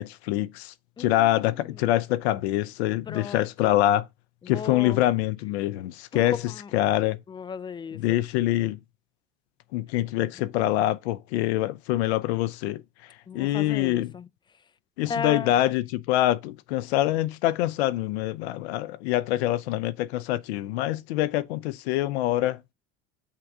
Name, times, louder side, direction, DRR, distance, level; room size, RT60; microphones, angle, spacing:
voice 1, 0.0-4.1 4.5-6.4 6.7-7.2 7.9-8.8 9.7-12.8 13.3-14.1 15.0-22.6, left 14 dB, 80° left, 0.6 m, -25 dB
voice 2, 1.0-1.9 3.1-3.8 4.4-5.0 6.1-6.7 7.3-8.2 13.3-14.3 15.1-15.7, left 6 dB, 15° left, 0.4 m, -36 dB
7.5 x 3.7 x 4.7 m
hypercardioid pair, 80°, 32 cm